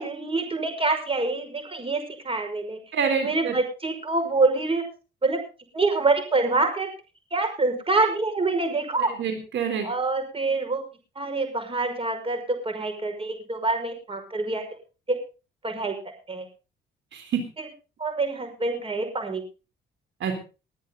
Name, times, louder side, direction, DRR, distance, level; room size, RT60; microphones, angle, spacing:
voice 1, 0.0-2.8 3.2-4.8 5.2-5.4 5.7-6.9 7.3-9.1 9.8-10.8 11.2-14.6 15.1-15.2 15.6-15.9 16.3-16.5 18.0-19.4, right 3 dB, 30° right, 6 dB, 5.7 m, -26 dB
voice 2, 2.9-3.6 9.2-9.9 17.1-17.4 20.2-20.3, right 6 dB, 70° right, 6 dB, 3.7 m, -26 dB
21.0 x 10.0 x 3.9 m, 0.34 s
cardioid pair, 90°, 20 cm